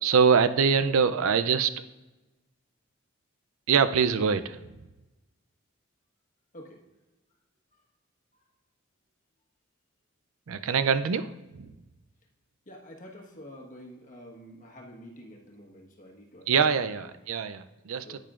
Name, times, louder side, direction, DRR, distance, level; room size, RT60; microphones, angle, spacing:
voice 1, 0.0-1.7 3.7-4.6 10.5-11.7 16.5-18.2, right 6 dB, 80° right, 11 dB, 0.4 m, -24 dB
voice 2, 0.8-1.2 6.5-6.8 12.7-16.9 18.0-18.2, equal, 40° left, 0 dB, 1.4 m, -48 dB
10.0 x 8.9 x 2.5 m, 1.1 s
head